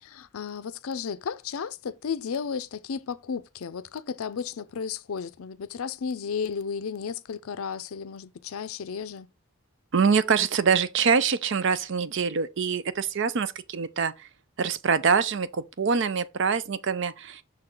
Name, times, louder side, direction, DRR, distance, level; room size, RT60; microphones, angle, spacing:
voice 1, 0.0-9.3, left 6 dB, 80° left, 0.5 m, -33 dB
voice 2, 9.9-14.1 14.6-17.4, right 6 dB, 55° right, 0.5 m, -24 dB
6.3 x 3.8 x 4.4 m
head